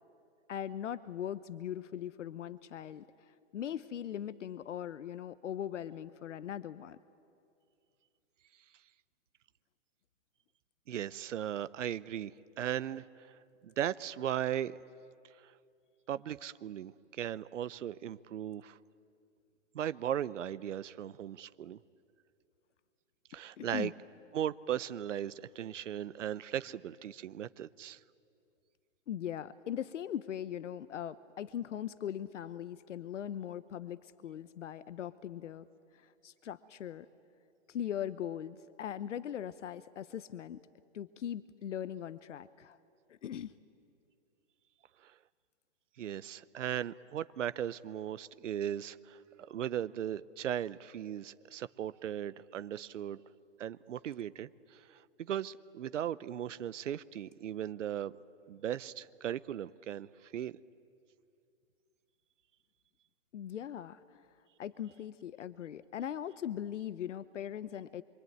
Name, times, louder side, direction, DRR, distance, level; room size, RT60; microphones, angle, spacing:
voice 1, 0.5-7.0 23.6-23.9 29.1-35.7 35.9-37.1 37.7-40.6 40.9-42.8 43.1-43.5 63.3-64.2 64.6-68.0, left 10 dB, 80° left, 15 dB, 0.9 m, -40 dB
voice 2, 10.9-12.3 12.6-14.8 15.4-15.5 16.1-18.8 19.7-21.8 23.3-23.9 24.3-28.0 45.0-45.1 46.0-49.2 49.5-53.2 53.6-58.1 58.5-60.5, right 10 dB, 80° right, 16 dB, 0.8 m, -37 dB
26.0 x 24.0 x 9.3 m, 2.4 s
hypercardioid pair, 175°, 36 cm